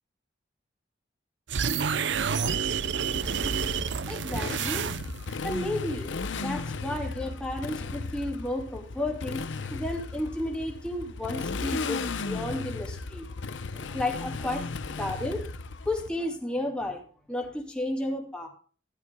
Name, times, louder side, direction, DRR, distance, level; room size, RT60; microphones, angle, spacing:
sound 1, 1.5-5.3, right 6 dB, 70° right, 0.6 m, -29 dB
Motorcycle, 3.2-16.1, left 4 dB, 85° left, 0.7 m, -35 dB
voice 1, 4.1-5.1 5.4-6.1 6.4-13.3 13.7-15.5 15.8-18.5, left 1 dB, 5° left, 0 dB, 2.6 m, -33 dB
14.5 x 11.5 x 2.2 m, 0.40 s
head